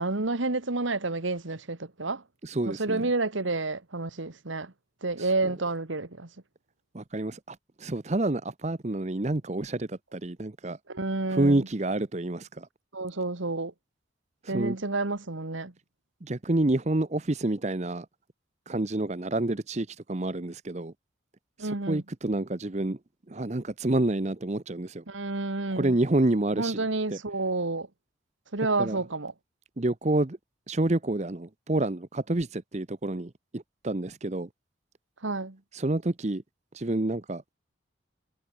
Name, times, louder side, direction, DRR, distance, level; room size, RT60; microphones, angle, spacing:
voice 1, 0.0-2.2 2.6-4.7 5.0-6.3 10.9-11.7 12.9-13.7 14.5-15.7 21.6-22.0 25.1-26.0 26.5-27.9 28.5-29.3 35.2-35.6, right 3 dB, 80° right, 1.7 m, -30 dB
voice 2, 2.4-3.1 5.2-5.3 6.9-10.8 11.3-12.7 14.4-14.8 16.2-18.1 18.7-20.9 21.6-23.0 23.3-25.0 25.8-27.2 28.8-29.0 29.8-30.4 30.7-34.5 35.7-36.4 36.7-37.4, right 2 dB, 35° right, 0.8 m, -28 dB
head